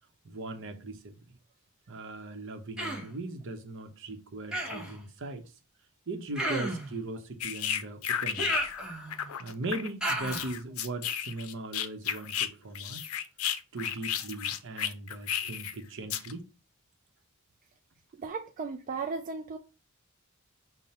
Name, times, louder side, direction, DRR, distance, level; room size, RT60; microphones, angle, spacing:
voice 1, 0.2-1.1 1.9-5.4 6.1-8.6 9.4-13.1 13.7-16.5, right 2 dB, 65° right, 0.8 m, -39 dB
Human voice, 2.8-3.1 4.5-5.0 6.3-6.9 8.4-9.3 10.0-10.5, right 1 dB, 5° right, 1.0 m, -32 dB
sound 1, 7.4-8.8 9.1-12.5 12.8-15.7 16.1-16.3, left 9 dB, 90° left, 0.5 m, -33 dB
voice 2, 18.2-19.6, right 4 dB, 40° right, 0.3 m, -35 dB
5.6 x 2.1 x 4.2 m
head